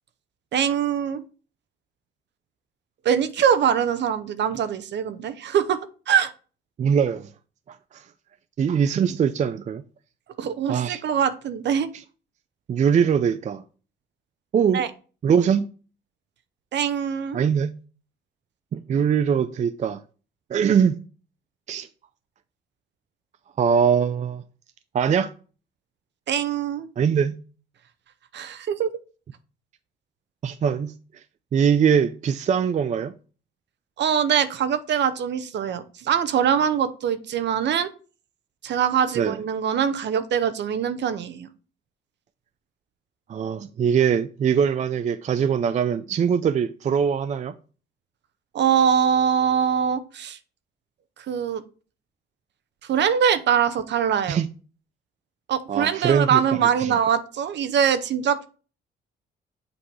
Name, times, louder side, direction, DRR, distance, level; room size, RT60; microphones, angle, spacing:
voice 1, 0.5-1.2 3.0-5.8 6.1-6.3 10.4-11.9 14.7-14.9 16.7-17.4 26.3-26.9 28.3-28.9 34.0-37.9 38.6-41.5 48.5-50.4 51.3-51.6 52.9-54.4 55.5-58.5, right 8 dB, 65° right, 0.7 m, -23 dB
voice 2, 6.8-7.3 7.7-8.0 8.6-9.8 10.7-11.0 12.7-13.6 14.5-14.8 15.2-15.7 17.3-17.8 18.7-20.0 20.5-21.0 21.7-21.9 23.6-24.4 24.9-25.3 27.0-27.4 30.4-30.9 31.5-33.1 39.2-39.4 43.3-47.5 54.3-54.5 55.7-56.9, right 7 dB, 35° right, 0.4 m, -22 dB
7.8 x 2.8 x 4.6 m
cardioid pair, 90°, 20 cm